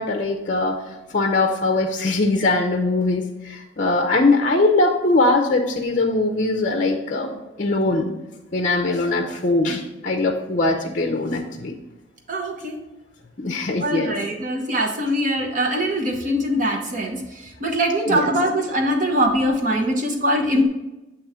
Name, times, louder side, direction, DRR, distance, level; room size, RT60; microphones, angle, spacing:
voice 1, 0.0-8.1 8.5-11.7 13.4-14.1 18.1-18.3, left 2 dB, 45° left, 3 dB, 0.6 m, -21 dB
voice 2, 12.3-12.8 13.8-20.7, equal, 45° right, 2 dB, 1.0 m, -22 dB
7.8 x 3.0 x 4.8 m, 1.0 s
head